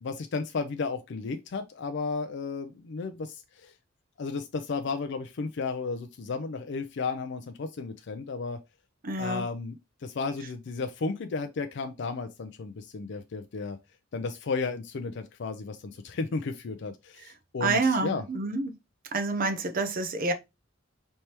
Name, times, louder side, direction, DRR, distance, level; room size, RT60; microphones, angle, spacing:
voice 1, 0.0-3.7 4.2-8.6 9.2-13.8 14.1-18.2, left 4 dB, 65° left, 0.4 m, -33 dB
voice 2, 9.0-9.5 17.6-18.8 19.1-20.3, right 3 dB, 45° right, 0.7 m, -28 dB
4.4 x 3.4 x 2.9 m
head